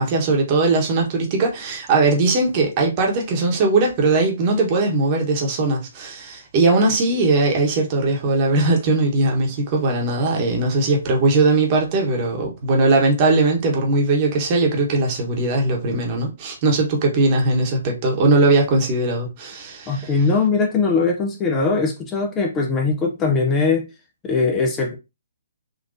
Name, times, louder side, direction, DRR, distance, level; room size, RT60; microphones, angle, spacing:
voice 1, 0.0-20.1, right 3 dB, 35° right, 1.1 m, -19 dB
voice 2, 19.9-23.9 24.2-25.0, left 4 dB, 20° left, 0.5 m, -20 dB
3.8 x 2.5 x 2.6 m
figure-of-eight pair, 135°, 0 cm